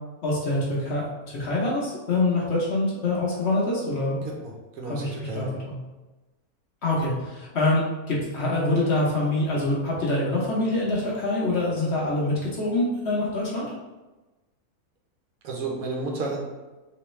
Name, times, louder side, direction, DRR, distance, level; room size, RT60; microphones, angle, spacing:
voice 1, 0.2-4.2 4.9-5.8 6.8-13.8, left 2 dB, 55° left, -5 dB, 0.9 m, -25 dB
voice 2, 4.8-5.5 15.4-16.4, right 3 dB, 70° right, -1 dB, 1.1 m, -31 dB
3.4 x 3.1 x 3.0 m, 1.1 s
omnidirectional pair, 1.5 m